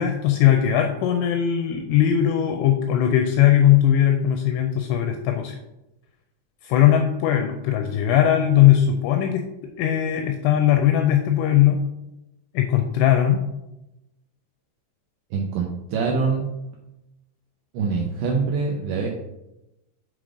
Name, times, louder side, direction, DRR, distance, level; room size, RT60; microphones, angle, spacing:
voice 1, 0.0-5.6 6.6-9.4 9.8-11.8 12.5-13.4, left 11 dB, 85° left, 5 dB, 2.7 m, -19 dB
voice 2, 15.3-16.5 17.7-19.1, right 5 dB, 85° right, -1 dB, 2.4 m, -24 dB
8.0 x 3.8 x 4.9 m, 0.93 s
omnidirectional pair, 6.0 m